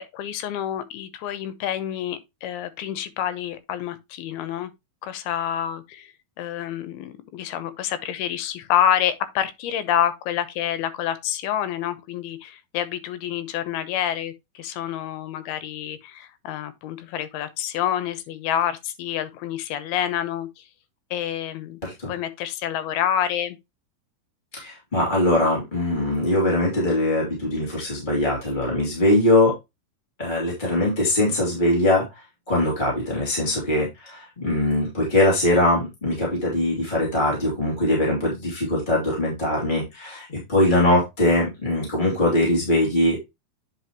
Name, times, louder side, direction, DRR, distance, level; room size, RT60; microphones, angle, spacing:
voice 1, 0.0-4.7 5.0-20.7 21.1-21.8 22.1-23.6, left 10 dB, 80° left, 2.7 m, -28 dB
voice 2, 24.5-29.5 30.2-32.1 32.5-43.2, left 1 dB, 15° left, 2.1 m, -22 dB
9.4 x 5.4 x 2.9 m
omnidirectional pair, 4.5 m